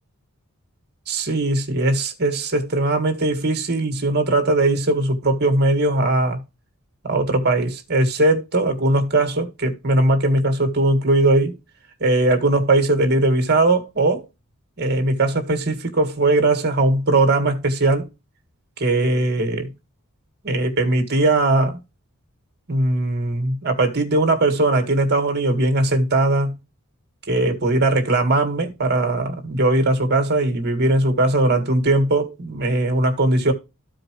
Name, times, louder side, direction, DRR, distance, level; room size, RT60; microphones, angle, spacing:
voice 1, 1.1-6.4 7.0-11.6 12.0-14.3 14.8-18.1 18.8-19.7 20.4-21.8 22.7-26.6 27.3-33.5, right 2 dB, 45° right, 1.9 m, -19 dB
13.5 x 4.9 x 3.0 m
head